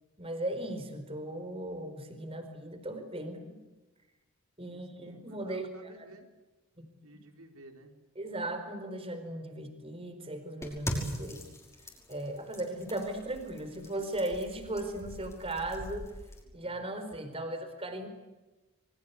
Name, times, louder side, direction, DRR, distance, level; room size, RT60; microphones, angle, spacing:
voice 1, 0.2-3.6 4.6-6.1 8.2-11.4 12.1-16.1 16.5-18.1, right 1 dB, 25° right, 7 dB, 4.5 m, -37 dB
voice 2, 4.7-6.3 7.0-7.9 16.4-16.7 17.2-17.4, right 1 dB, 70° right, 4 dB, 4.5 m, -54 dB
sound 1, 10.6-16.4, equal, 15° left, 5.6 m, -41 dB
27.5 x 24.0 x 8.2 m, 1.1 s
head